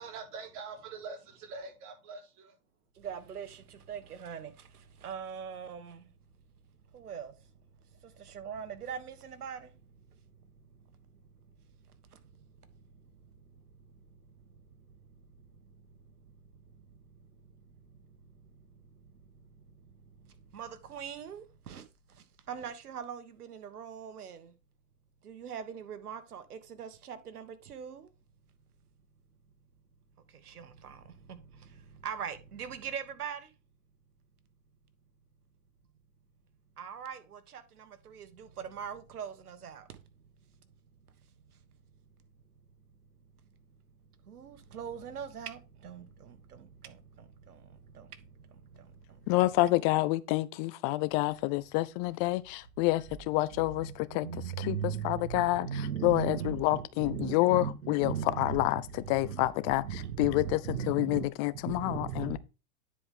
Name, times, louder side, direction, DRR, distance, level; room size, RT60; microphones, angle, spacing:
voice 1, 0.0-2.6, right 4 dB, 40° right, 4.1 m, -44 dB
voice 2, 3.0-3.5 3.9-4.5 5.0-5.8 7.1-7.3 8.4-9.0 9.4-9.6 20.6-21.4 22.5-23.2 23.7-24.4 25.4-26.4 26.8-27.2 27.7-28.0 32.0-33.4 36.8-37.2 38.8-39.3 39.6-39.7 44.7-45.5 45.8-46.0 54.2-55.0 55.6-58.6 60.2-61.3 61.7-62.4, right 8 dB, 85° right, 1.5 m, -38 dB
voice 3, 49.3-54.3 54.6-62.4, left 19 dB, 30° left, 0.4 m, -28 dB
10.0 x 4.9 x 3.6 m
hypercardioid pair, 110°, 44 cm